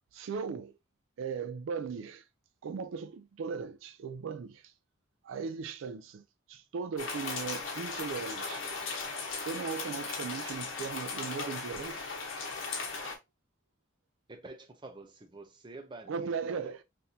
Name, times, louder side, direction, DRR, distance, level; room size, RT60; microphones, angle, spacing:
voice 1, 0.1-0.7 1.2-2.2 2.6-4.7 5.2-8.7 9.4-12.1 16.1-16.8, right 5 dB, 75° right, 0.3 m, -38 dB
sound 1, 7.0-13.2, left 4 dB, 75° left, 1.0 m, -37 dB
voice 2, 14.3-16.8, right 2 dB, 25° right, 0.6 m, -48 dB
4.1 x 2.6 x 2.7 m
head